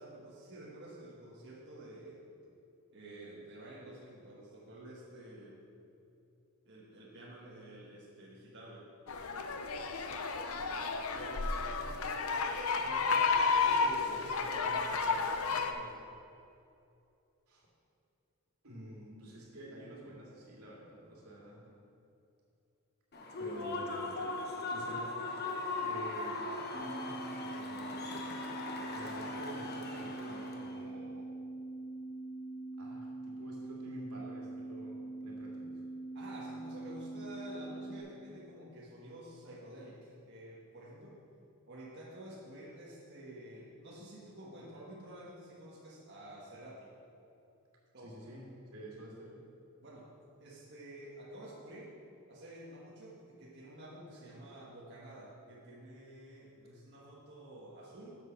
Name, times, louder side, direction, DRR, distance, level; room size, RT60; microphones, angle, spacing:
voice 1, 0.0-2.2 2.9-5.6 6.6-8.8 12.8-16.1 29.0-29.3 36.1-41.2 41.7-46.9 47.9-48.3 49.8-50.1 50.4-51.9 52.3-58.2, right 1 dB, 50° right, -7 dB, 1.6 m, -50 dB
sound 1, 9.1-15.7, left 4 dB, 70° left, 0.7 m, -32 dB
voice 2, 11.1-12.0 17.5-17.7 18.6-21.7 23.4-25.1 25.8-26.4 26.7-28.2 28.9-31.3 32.8-35.8 48.0-49.4, right 1 dB, 85° right, -4 dB, 2.6 m, -49 dB
Human voice / Cheering / Applause, 23.1-30.8, left 3 dB, 45° left, 1.0 m, -39 dB
sound 2, 26.7-38.0, right 2 dB, 20° left, 1.6 m, -43 dB
7.9 x 7.3 x 6.1 m, 2.7 s
head